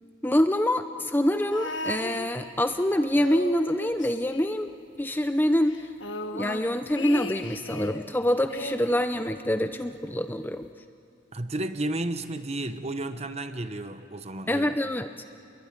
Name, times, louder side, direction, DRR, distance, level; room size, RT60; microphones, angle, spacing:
voice 1, 0.2-5.8 6.3-10.7 14.5-15.1, left 1 dB, 10° left, 9 dB, 0.6 m, -25 dB
sound 1, 1.5-2.8 3.1-5.0 5.3-5.4 5.7-8.1 8.5-9.8 10.6-10.7, left 2 dB, 70° left, 1.4 m, -37 dB
voice 2, 11.3-14.7, right 1 dB, 30° right, 10 dB, 1.0 m, -32 dB
27.5 x 22.5 x 9.8 m, 2.5 s
head